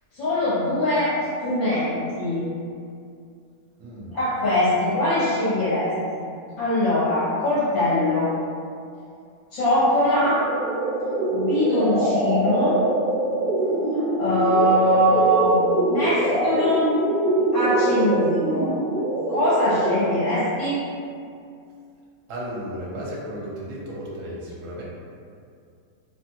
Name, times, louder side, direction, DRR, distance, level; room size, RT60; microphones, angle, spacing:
voice 1, 0.1-1.1 1.4-2.5 4.1-5.9 6.6-8.3 9.5-10.4 11.3-12.8 14.2-15.6 15.8-16.9 17.5-18.8 19.3-20.8, left 1 dB, 65° left, -12 dB, 1.6 m, -22 dB
voice 2, 3.8-4.1 22.3-24.8, equal, 65° right, -5 dB, 1.0 m, -34 dB
sound 1, 10.2-20.2, right 2 dB, 90° right, 0.5 m, -24 dB
2.9 x 2.5 x 2.8 m, 2.4 s
omnidirectional pair, 1.5 m